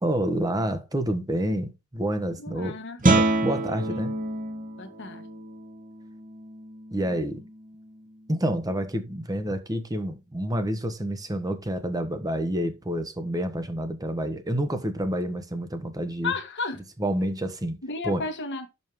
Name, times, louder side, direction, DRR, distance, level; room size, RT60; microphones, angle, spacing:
voice 1, 0.0-4.2 6.9-7.4 8.3-16.3 17.0-17.8 18.0-18.2, right 1 dB, 15° right, 1.1 m, -28 dB
voice 2, 2.4-3.0 3.4-3.5 4.8-5.3 16.2-16.8 17.8-18.7, left 4 dB, 55° left, 1.5 m, -33 dB
Guitar, 3.0-8.6, right 2 dB, 40° right, 1.4 m, -28 dB
6.4 x 5.4 x 4.6 m
head